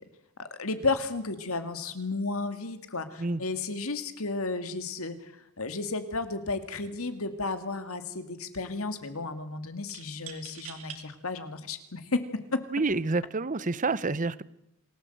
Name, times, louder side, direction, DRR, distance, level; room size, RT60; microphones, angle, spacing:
voice 1, 0.4-12.6, left 3 dB, 70° left, 9 dB, 2.2 m, -33 dB
sound 1, 6.8-7.0 7.3-8.0 9.9-11.0 11.7-11.8 12.7-13.0, right 9 dB, 65° right, 3.0 m, -46 dB
voice 2, 12.7-14.4, right 3 dB, 35° right, 19 dB, 0.8 m, -28 dB
27.0 x 17.5 x 7.9 m, 0.85 s
head